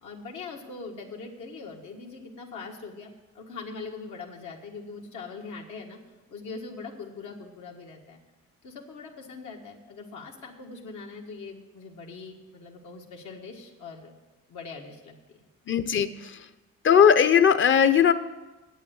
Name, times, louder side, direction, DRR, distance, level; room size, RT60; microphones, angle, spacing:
voice 1, 0.0-6.0 6.3-8.2 8.6-14.1 14.5-15.4, left 4 dB, 80° left, 0 dB, 1.7 m, -42 dB
voice 2, 15.7-16.2 16.8-18.1, left 8 dB, 40° left, 13 dB, 0.7 m, -18 dB
9.1 x 8.1 x 8.0 m, 1.1 s
cardioid pair, 90°, 30 cm